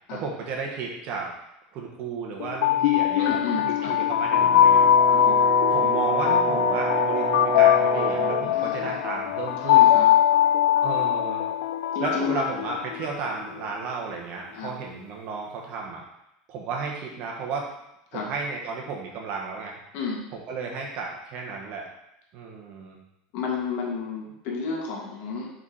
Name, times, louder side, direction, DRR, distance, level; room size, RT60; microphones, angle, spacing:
voice 1, 0.1-1.3 1.7-4.9 5.7-10.0 10.8-11.5 12.0-16.0 16.5-17.7 18.1-19.8 20.3-21.9 22.3-23.0, right 5 dB, 50° right, 0 dB, 1.5 m, -33 dB
sound 1, 2.4-13.5, left 10 dB, 85° left, 0.3 m, -21 dB
voice 2, 3.2-4.0 5.1-5.4 8.5-9.1 9.6-10.1 11.9-12.5 14.5-14.7 18.1-18.3 19.9-20.3 23.3-25.5, left 5 dB, 60° left, -2 dB, 1.9 m, -32 dB
Brass instrument, 4.3-8.5, right 7 dB, 30° right, 0.4 m, -28 dB
5.1 x 4.4 x 4.9 m, 0.83 s
supercardioid pair, 125°, 3 cm